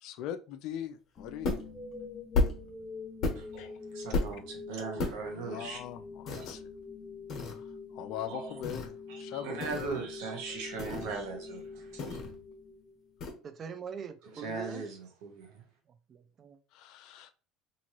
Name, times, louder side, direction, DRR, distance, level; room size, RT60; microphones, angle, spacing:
voice 1, 0.0-1.6 3.6-3.7 5.2-6.6 7.4-10.0 16.7-17.3, left 10 dB, 65° left, 0.4 m, -41 dB
sound 1, 1.2-13.2, left 4 dB, 15° left, 0.6 m, -45 dB
sound 2, 1.4-1.8 2.3-2.7 3.2-3.6 4.1-4.4 5.0-5.2 6.3-6.6 7.3-7.6 8.6-8.9 9.6-10.0 10.8-11.2 12.0-12.4 13.2-13.3, left 3 dB, 50° left, 1.1 m, -32 dB
voice 2, 3.3-5.8 8.3-8.5 9.1-12.2 14.3-15.6, right 4 dB, 75° right, 1.0 m, -39 dB
voice 3, 13.4-14.8 16.1-16.6, right 7 dB, 40° right, 0.4 m, -43 dB
2.9 x 2.6 x 2.9 m
supercardioid pair, 90°, 0 cm